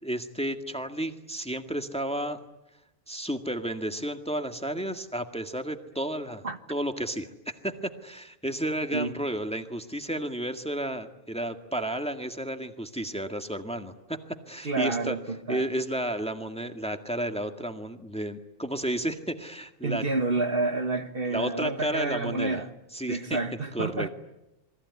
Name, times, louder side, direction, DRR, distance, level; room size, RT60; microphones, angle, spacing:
voice 1, 0.0-2.4 3.1-7.7 8.0-15.2 15.5-20.0 21.3-22.6 22.9-23.4 23.7-24.1, right 1 dB, 5° left, 1.8 m, -32 dB
voice 2, 14.6-15.7 19.8-22.7 23.1-24.1, right 2 dB, 45° right, 1.7 m, -29 dB
28.0 x 21.0 x 9.6 m
omnidirectional pair, 1.3 m